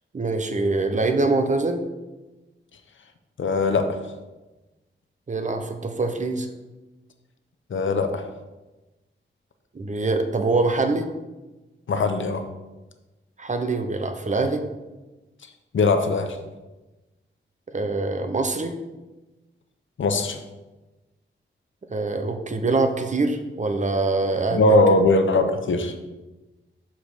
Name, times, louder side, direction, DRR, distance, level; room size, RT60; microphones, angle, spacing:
voice 1, 0.1-1.8 5.3-6.5 9.7-11.1 13.4-14.6 17.7-18.7 21.9-24.6, right 3 dB, 35° right, 7 dB, 0.8 m, -24 dB
voice 2, 3.4-4.0 7.7-8.3 11.9-12.4 15.7-16.4 20.0-20.4 24.5-25.9, left 2 dB, 70° left, 6 dB, 0.8 m, -20 dB
5.7 x 5.0 x 6.6 m, 1.1 s
wide cardioid pair, 125°, 21 cm